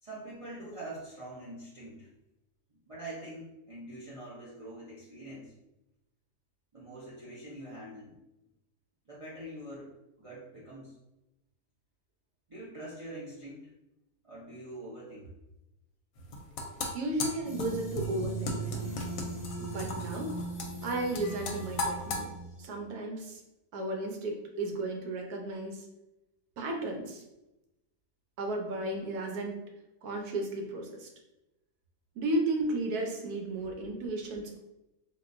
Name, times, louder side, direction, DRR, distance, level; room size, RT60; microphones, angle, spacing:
voice 1, 0.0-2.1 2.7-5.5 6.7-8.2 9.1-9.9 10.2-10.9 12.5-13.7 14.2-15.3 33.6-33.7, right 1 dB, 45° right, -7 dB, 0.4 m, -44 dB
sound 1, 16.2-22.2, left 2 dB, 70° left, 0.9 m, -37 dB
voice 2, 16.9-18.8 19.6-20.3 20.8-22.3 22.6-23.4 23.7-25.8 26.6-27.2 28.4-29.6 30.0-31.1 32.2-34.6, right 2 dB, 80° right, 2 dB, 1.2 m, -34 dB
sound 2, 17.4-22.7, right 2 dB, 15° left, 0.6 m, -39 dB
3.7 x 2.5 x 2.5 m, 0.95 s
omnidirectional pair, 1.6 m